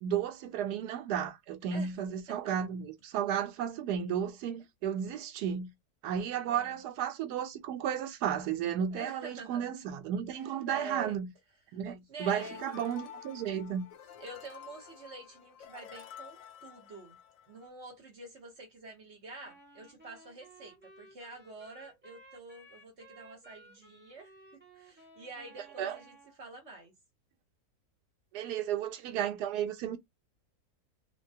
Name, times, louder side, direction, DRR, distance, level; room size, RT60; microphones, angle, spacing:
voice 1, 0.0-5.7 6.0-11.3 11.7-13.9 25.8-26.0 28.3-30.0, right 9 dB, 90° right, 1.2 m, -33 dB
voice 2, 6.5-6.8 8.9-9.7 10.7-11.2 11.7-11.8 12.1-12.6 14.2-17.2 17.5-26.9, right 3 dB, 50° right, 1.1 m, -47 dB
sound 1, 12.2-17.7, left 8 dB, 70° left, 0.9 m, -50 dB
Wind instrument woodwind instrument, 19.4-26.4, right 2 dB, 10° right, 0.8 m, -57 dB
3.4 x 2.2 x 2.7 m
omnidirectional pair, 1.7 m